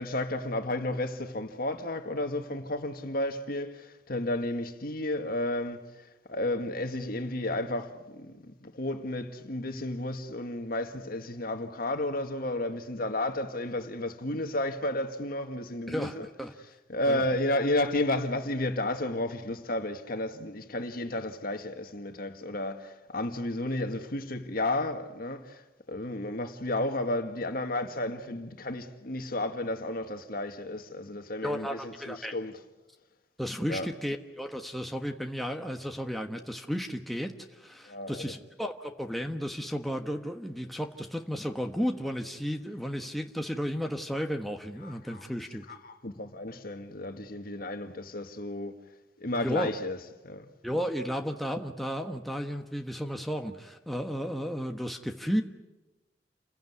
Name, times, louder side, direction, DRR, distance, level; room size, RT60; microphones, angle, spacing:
voice 1, 0.0-5.8 6.3-16.3 16.9-25.6 25.9-32.6 33.7-33.9 37.9-38.3 44.8-45.2 45.7-48.8 49.2-50.5, left 1 dB, 55° left, 1.9 m, -32 dB
voice 2, 15.9-16.5 17.1-17.2 31.4-32.3 33.4-45.7 49.4-49.7 50.6-55.4, equal, ahead, 1.3 m, -33 dB
29.5 x 16.0 x 9.6 m
head